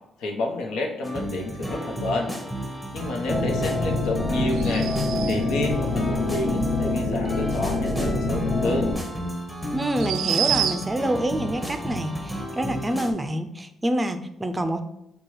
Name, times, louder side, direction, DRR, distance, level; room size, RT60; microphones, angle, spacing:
voice 1, 0.2-2.4 2.9-4.9 5.2-8.9, left 2 dB, 85° left, 1 dB, 0.9 m, -29 dB
sound 1, 1.0-13.1, right 1 dB, 10° left, 0.9 m, -33 dB
sound 2, 3.3-8.9, left 2 dB, 60° left, 1.0 m, -26 dB
sound 3, 4.5-5.6 8.7-8.8 9.8-11.1, right 9 dB, 80° right, 0.4 m, -28 dB
voice 2, 9.7-14.8, right 1 dB, 20° right, 8 dB, 0.4 m, -27 dB
4.4 x 2.3 x 4.6 m, 0.79 s
cardioid pair, 90°, 0 cm